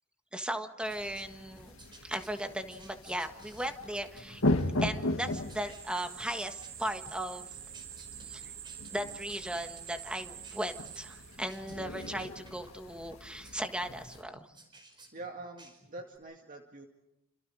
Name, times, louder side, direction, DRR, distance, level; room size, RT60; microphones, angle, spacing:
voice 1, 0.3-1.7 2.0-4.4 4.8-7.5 8.2-8.4 8.9-14.4, right 1 dB, 5° right, 7 dB, 1.6 m, -37 dB
sound 1, 0.8-14.2, left 1 dB, 70° left, 2.0 m, -38 dB
sound 2, 0.8-16.2, right 2 dB, 20° right, 5.2 m, -57 dB
sound 3, 5.2-11.7, right 12 dB, 80° right, 4.5 m, -47 dB
voice 2, 15.1-16.9, right 2 dB, 40° right, 2 dB, 2.1 m, -45 dB
29.5 x 27.0 x 4.9 m, 0.92 s
head